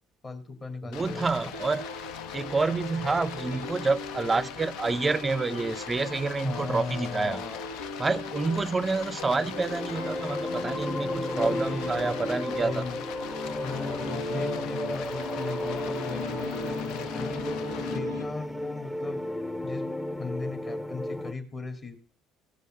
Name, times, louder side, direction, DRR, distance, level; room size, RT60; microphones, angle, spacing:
voice 1, 0.2-1.5 6.4-7.7 10.9-12.2 12.6-13.0 13.6-17.4 17.9-19.2 19.6-19.9 20.2-22.0, left 4 dB, 30° left, 2.6 m, -38 dB
voice 2, 0.8-1.9 2.3-7.4 8.0-12.8 14.3-14.4, right 3 dB, 25° right, 0.5 m, -28 dB
Stream, 0.9-18.0, left 10 dB, 60° left, 0.5 m, -42 dB
sound 1, 1.5-18.7, left 3 dB, 85° left, 1.3 m, -39 dB
sound 2, 9.5-21.3, left 1 dB, 10° left, 0.8 m, -33 dB
16.5 x 5.5 x 6.2 m
figure-of-eight pair, 55°, 0 cm